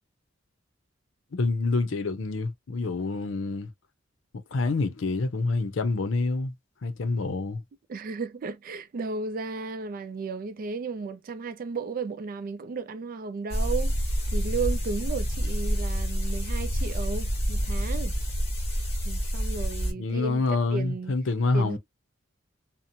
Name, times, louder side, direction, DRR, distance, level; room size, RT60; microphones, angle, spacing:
voice 1, 1.3-3.7 4.5-6.5 6.8-7.6 19.9-21.8, left 3 dB, 80° left, 0.6 m, -27 dB
voice 2, 7.9-14.0 14.3-18.1 19.0-20.4 20.7-21.1 21.5-21.8, right 4 dB, 45° right, 0.3 m, -34 dB
sound 1, 13.5-19.9, equal, 30° left, 1.3 m, -28 dB
2.8 x 2.0 x 2.5 m
head